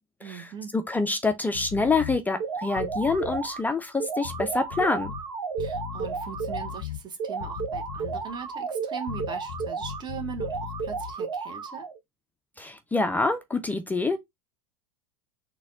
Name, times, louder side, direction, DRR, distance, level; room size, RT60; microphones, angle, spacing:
voice 1, 0.2-0.7 5.6-11.9, right 6 dB, 25° right, 1.0 m, -40 dB
voice 2, 0.7-5.1 12.6-14.2, left 3 dB, 10° left, 0.4 m, -26 dB
sound 1, 1.5-2.2 2.7-3.5 4.2-5.2 5.6-7.0 7.4-8.4 9.1-11.1, left 9 dB, 65° left, 0.5 m, -38 dB
sound 2, 2.4-3.6 4.0-6.8 7.2-10.0 10.4-12.0, right 5 dB, 70° right, 1.1 m, -33 dB
4.0 x 2.3 x 3.7 m
figure-of-eight pair, 85°, 18 cm